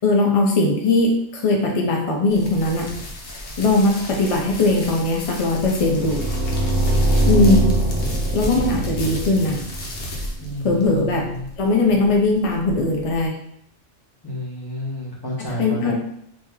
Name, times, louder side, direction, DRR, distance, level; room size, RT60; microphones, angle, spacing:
voice 1, 0.0-2.9 3.6-6.3 7.2-7.7 8.3-9.6 10.6-11.3 11.6-13.3 15.6-15.9, left 2 dB, 50° left, 0 dB, 0.4 m, -19 dB
sound 1, 2.3-13.3, left 1 dB, 65° left, 1.0 m, -34 dB
sound 2, 5.6-10.6, right 1 dB, 35° right, 0.9 m, -22 dB
voice 2, 10.4-11.5 14.2-15.9, left 1 dB, 20° left, -7 dB, 1.0 m, -30 dB
3.0 x 2.7 x 3.5 m, 0.72 s
omnidirectional pair, 1.3 m